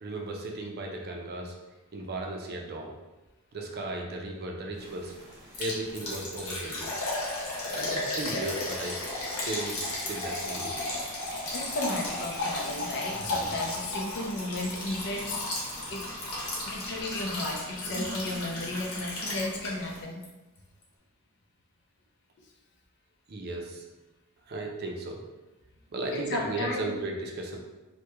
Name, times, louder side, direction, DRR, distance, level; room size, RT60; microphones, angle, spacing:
voice 1, 0.0-1.5 1.9-2.9 3.5-5.1 5.6-6.9 7.7-9.0 9.4-9.8 10.1-10.7 17.8-18.7 23.3-23.8 24.5-25.2 25.9-27.6, right 2 dB, 45° right, 0 dB, 0.5 m, -36 dB
sound 1, 4.7-20.0, equal, 30° right, 1.0 m, -48 dB
Liquid, 5.5-20.0 20.2-20.3 20.8-20.9, left 2 dB, 75° left, 0.9 m, -34 dB
voice 2, 11.5-16.1 16.6-20.2 26.1-27.0, left 2 dB, 50° left, 0 dB, 0.5 m, -34 dB
3.0 x 2.2 x 3.4 m, 1.1 s
head